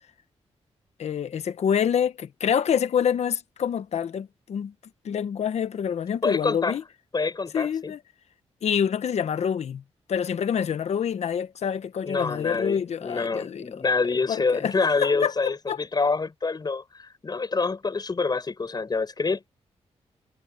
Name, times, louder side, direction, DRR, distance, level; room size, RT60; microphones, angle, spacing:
voice 1, 1.0-4.7 5.0-6.8 7.5-8.0 8.6-9.8 10.1-13.8 14.3-14.7 15.0-15.8, left 8 dB, 70° left, 1.2 m, -26 dB
voice 2, 6.2-6.8 7.1-7.9 12.0-19.4, left 4 dB, 35° left, 6.6 m, -26 dB
cardioid pair, 90°, 12 cm